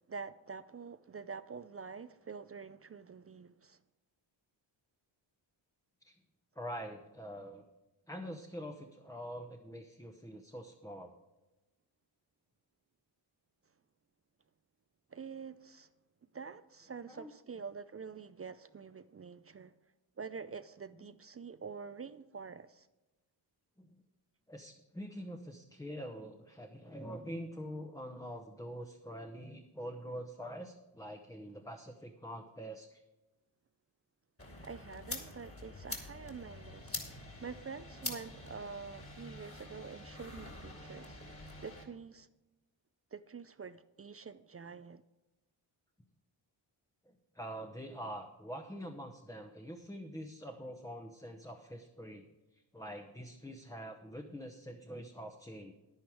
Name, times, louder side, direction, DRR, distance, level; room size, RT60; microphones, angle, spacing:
voice 1, 0.1-3.8 15.1-15.9 16.3-19.7 20.2-22.9 34.6-42.3 43.1-45.0, right 5 dB, 30° right, 0.5 m, -47 dB
voice 2, 6.5-7.6 8.1-11.1 17.1-17.3 23.8-24.0 24.5-33.0 47.0-52.2 52.5-55.7, equal, 5° left, 0.9 m, -45 dB
sound 1, 34.4-41.8, left 2 dB, 30° left, 2.4 m, -46 dB
10.0 x 9.3 x 4.8 m
cardioid pair, 65°, 47 cm